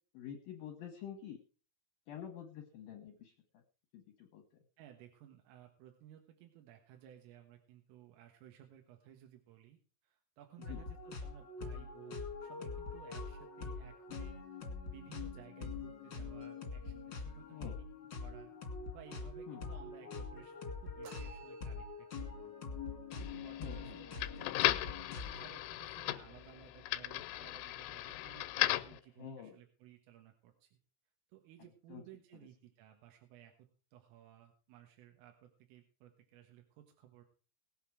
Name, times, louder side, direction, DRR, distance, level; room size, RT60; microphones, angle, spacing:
voice 1, 0.1-1.4 2.1-3.6 3.9-4.4 10.7-10.8 17.5-17.8 19.5-19.6 23.6-24.0 29.2-29.6 31.9-32.0, left 8 dB, 70° left, 3 dB, 2.3 m, -48 dB
voice 2, 4.8-14.4 14.9-17.6 18.2-18.5 18.9-22.6 23.2-25.0 25.3-30.8 31.3-33.5 33.9-37.2, right 11 dB, 85° right, 3 dB, 4.1 m, -58 dB
Happy Quirky Loop, 10.6-25.5, left 4 dB, 40° left, 1.7 m, -44 dB
sound 1, 21.0-22.3, right 7 dB, 65° right, 3.5 m, -56 dB
sound 2, 23.1-29.0, left 16 dB, 90° left, 3.3 m, -37 dB
19.0 x 8.3 x 4.7 m, 0.38 s
omnidirectional pair, 5.7 m